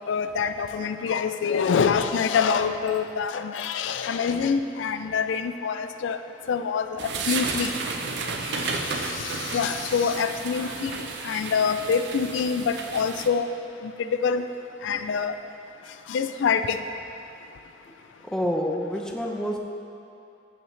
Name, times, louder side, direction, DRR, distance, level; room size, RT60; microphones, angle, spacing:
voice 1, 0.1-6.2 6.5-7.0 7.3-7.7 9.5-10.9 11.2-13.5 14.2-14.4 14.8-15.3 16.1-16.8, left 6 dB, 80° left, 9 dB, 0.3 m, -25 dB
sound 1, 7.0-13.3, right 4 dB, 65° right, 0.6 m, -32 dB
voice 2, 18.2-19.6, equal, 5° left, 0 dB, 0.7 m, -28 dB
14.5 x 5.6 x 3.2 m, 2.7 s
head